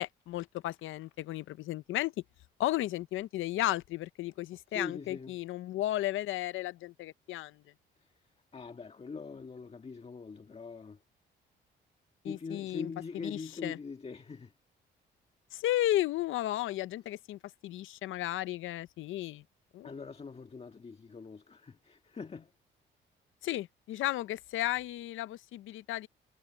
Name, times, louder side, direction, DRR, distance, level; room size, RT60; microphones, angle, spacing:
voice 1, 0.0-2.1 2.6-7.6 12.2-12.9 13.2-13.8 15.5-19.4 19.7-19.9 23.4-26.1, left 15 dB, 80° left, 0.6 m, -34 dB
voice 2, 4.7-5.4 8.0-11.0 12.2-14.5 19.8-22.5 25.7-25.8, left 4 dB, 30° left, 1.6 m, -43 dB
cardioid pair, 90°, 20 cm